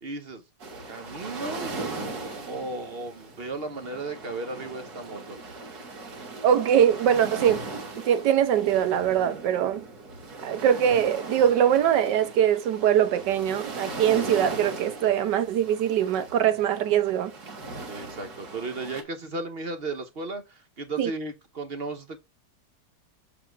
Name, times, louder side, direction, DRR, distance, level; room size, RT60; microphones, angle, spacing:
voice 1, 0.0-0.4 0.9-1.7 2.5-5.4 17.9-22.2, right 3 dB, 50° right, 0.8 m, -35 dB
sound 1, 0.6-19.0, right 3 dB, 65° right, 2.1 m, -38 dB
voice 2, 6.4-7.6 8.0-9.8 10.4-17.3 21.0-21.1, right 9 dB, 80° right, 1.5 m, -22 dB
7.0 x 3.7 x 4.5 m
omnidirectional pair, 1.8 m